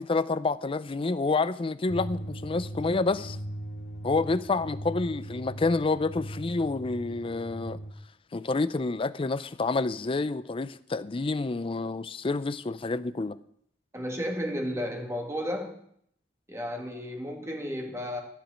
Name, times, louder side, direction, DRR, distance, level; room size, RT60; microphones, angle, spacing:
voice 1, 0.0-3.4 4.0-7.8 8.3-13.4, left 3 dB, 30° left, 0.5 m, -28 dB
sound 1, 1.9-7.9, equal, 70° left, 1.9 m, -39 dB
voice 2, 13.9-15.8 16.5-18.2, equal, 15° right, 1.8 m, -33 dB
13.0 x 5.1 x 9.0 m
head